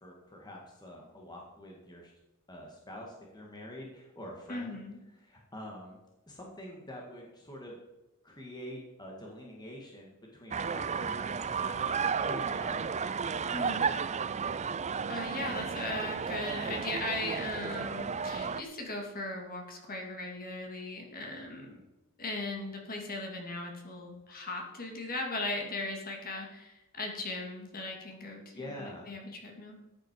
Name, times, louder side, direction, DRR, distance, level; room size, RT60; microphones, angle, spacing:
voice 1, 0.0-2.1 2.5-4.8 5.1-6.0 6.3-7.8 8.2-11.9 12.2-13.0 21.6-21.8 28.5-29.1, left 1 dB, 20° left, -1 dB, 2.1 m, -46 dB
voice 2, 4.5-5.0 13.5-13.9 15.1-21.7 22.2-29.8, left 2 dB, 40° left, 2 dB, 2.6 m, -38 dB
sound 1, 10.5-18.6, right 6 dB, 30° right, 0.5 m, -33 dB
14.0 x 9.0 x 4.8 m, 1.0 s
head